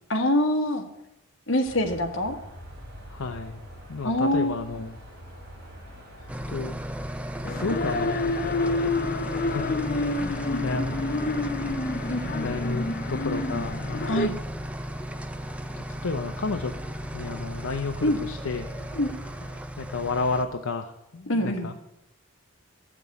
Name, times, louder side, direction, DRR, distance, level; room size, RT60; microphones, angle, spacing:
voice 1, 0.1-0.9 1.5-2.4 4.0-4.6 10.5-10.6 12.1-12.3 14.1-14.3 18.0-18.2 18.9-19.1 21.3-21.7, left 1 dB, 60° left, 4 dB, 1.5 m, -25 dB
sound 1, 1.6-19.6, equal, 50° right, 4.1 m, -46 dB
voice 2, 3.1-3.6 3.9-4.9 6.5-6.8 7.4-8.2 9.0-9.8 10.1-11.0 12.3-14.4 15.9-16.8 17.1-18.7 19.8-21.7, left 3 dB, 80° left, 5 dB, 0.7 m, -32 dB
sound 2, 6.3-20.5, equal, 5° right, 0.4 m, -35 dB
sound 3, 7.4-14.3, left 2 dB, 45° left, 0.7 m, -28 dB
12.5 x 6.0 x 8.3 m, 0.89 s
head